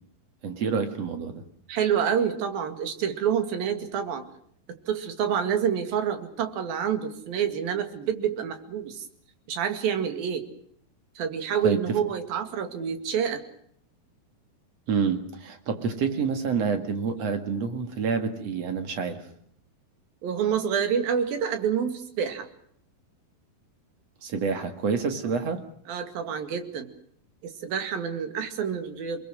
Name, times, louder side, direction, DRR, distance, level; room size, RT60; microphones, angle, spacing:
voice 1, 0.4-1.5 11.6-12.0 14.9-19.2 24.2-25.6, right 5 dB, 45° right, 7 dB, 2.8 m, -28 dB
voice 2, 1.7-4.3 4.9-9.1 9.5-10.5 11.2-13.4 20.2-22.5 25.9-26.9 27.4-29.3, right 8 dB, 65° right, 8 dB, 3.9 m, -27 dB
29.0 x 21.0 x 6.4 m, 0.65 s
omnidirectional pair, 4.5 m